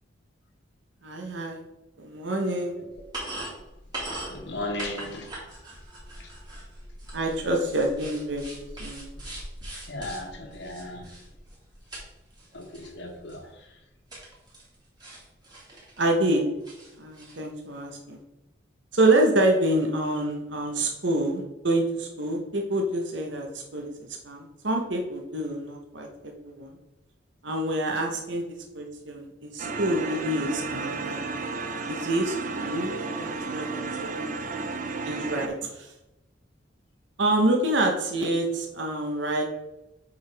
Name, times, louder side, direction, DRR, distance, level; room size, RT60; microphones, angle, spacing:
voice 1, 1.0-1.6 2.0-2.8 7.1-8.4 8.8-9.1 16.0-16.4 17.0-18.2 18.9-23.9 24.2-26.8 27.4-31.2 31.9-34.3 35.0-35.9 37.2-39.4, right 1 dB, 70° right, 2 dB, 1.1 m, -27 dB
sound 1, 2.9-12.1 12.3-12.9 13.3-13.4 14.1-14.8 15.0-16.3 16.6-17.4, right 1 dB, 20° right, 2.3 m, -41 dB
voice 2, 4.3-5.5 6.2-6.3 9.9-11.2 12.5-13.7, left 1 dB, 60° left, 3 dB, 1.3 m, -36 dB
sound 2, 29.6-35.5, right 4 dB, 40° right, 0.6 m, -32 dB
8.2 x 4.8 x 3.5 m, 0.94 s
head